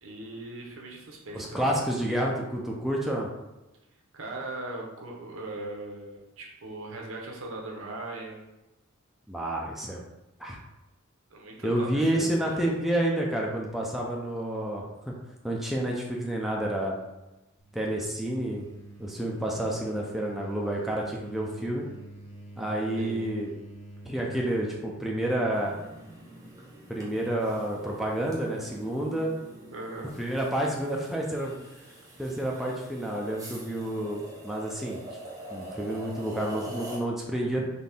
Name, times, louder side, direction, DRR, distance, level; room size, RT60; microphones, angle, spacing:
voice 1, 0.0-1.7 4.1-8.4 11.3-12.8 23.0-23.2 29.7-30.1, right 2 dB, 70° right, 0 dB, 0.8 m, -39 dB
voice 2, 1.3-3.3 9.3-10.0 10.4-10.6 11.6-15.1 15.4-17.0 17.7-18.7 19.0-21.8 22.6-23.5 24.1-25.8 26.9-29.3 30.2-31.5 32.2-35.0 35.5-37.6, right 1 dB, ahead, -3 dB, 0.4 m, -29 dB
sound 1, 17.6-25.3, right 1 dB, 60° left, 0.7 m, -47 dB
sound 2, 25.5-37.0, right 1 dB, 15° right, 0.8 m, -45 dB
4.1 x 2.6 x 3.4 m, 1.0 s
head